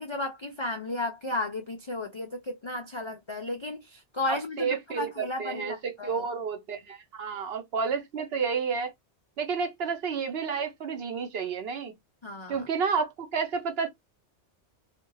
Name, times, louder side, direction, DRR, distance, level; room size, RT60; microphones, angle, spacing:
voice 1, 0.0-6.3 12.2-12.6, left 2 dB, 50° left, 0.3 m, -34 dB
voice 2, 4.3-8.9 9.4-11.9 12.5-13.9, right 5 dB, 65° right, 0.9 m, -30 dB
2.5 x 2.4 x 3.0 m
omnidirectional pair, 1.2 m